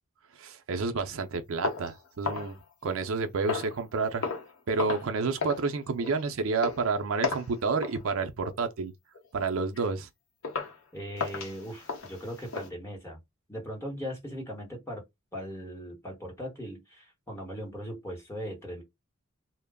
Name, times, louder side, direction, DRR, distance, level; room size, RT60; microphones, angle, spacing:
voice 1, 0.4-2.5 2.8-4.3 4.7-8.9 9.3-10.1, right 4 dB, 65° right, 0.5 m, -30 dB
sound 1, 1.6-3.1 3.5-3.8 4.2-4.5 4.8-5.1 5.4-5.7 6.0-6.2 6.6-6.8 7.2-7.5 7.8-8.0 8.4-8.7 9.1-9.3 9.8-9.9 10.4-10.8 11.2-12.7, left 5 dB, 60° left, 0.7 m, -34 dB
voice 2, 10.9-13.2 13.5-15.0 15.3-18.8, equal, 15° left, 1.0 m, -39 dB
2.2 x 2.0 x 3.4 m
head